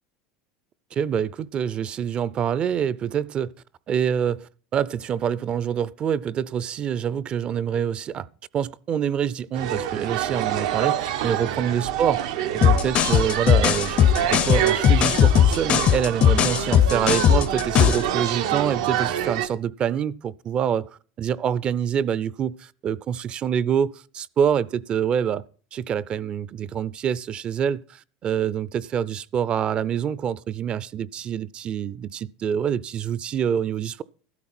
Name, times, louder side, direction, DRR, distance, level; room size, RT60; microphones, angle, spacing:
voice 1, 0.9-3.5 3.9-8.3 8.5-12.2 12.5-20.9 21.2-25.4 25.7-34.0, right 8 dB, 35° right, 0.5 m, -26 dB
sound 1, 9.5-19.5, right 10 dB, 90° right, 1.3 m, -26 dB
sound 2, 12.6-18.1, left 9 dB, 40° left, 0.6 m, -18 dB
14.5 x 12.5 x 4.3 m
supercardioid pair, 130°, 3 cm